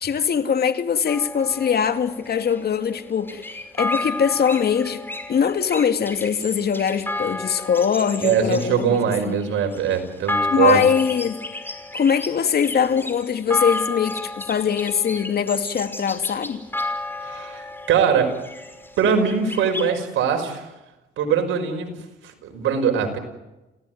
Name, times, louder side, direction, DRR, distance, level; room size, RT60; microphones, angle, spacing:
voice 1, 0.0-5.0 5.3-9.0 9.3-9.4 10.5-11.4 11.9-16.6, left 7 dB, 55° left, 2.3 m, -22 dB
sound 1, 1.1-19.9, left 2 dB, 10° left, 5.2 m, -32 dB
voice 2, 8.2-10.8 17.2-18.4 19.0-20.7 21.2-22.0 22.2-23.2, right 7 dB, 80° right, 5.6 m, -22 dB
29.5 x 17.5 x 9.5 m
cardioid pair, 90°, 20 cm